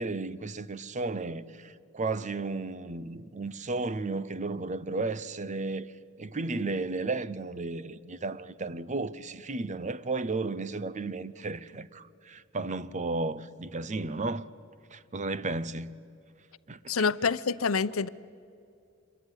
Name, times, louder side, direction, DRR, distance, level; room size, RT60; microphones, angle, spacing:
voice 1, 0.0-5.9 6.2-14.5 14.9-15.9 16.7-16.8, right 3 dB, 35° right, 0.8 m, -33 dB
voice 2, 16.9-18.1, left 5 dB, 80° left, 0.8 m, -27 dB
27.0 x 22.0 x 9.9 m
head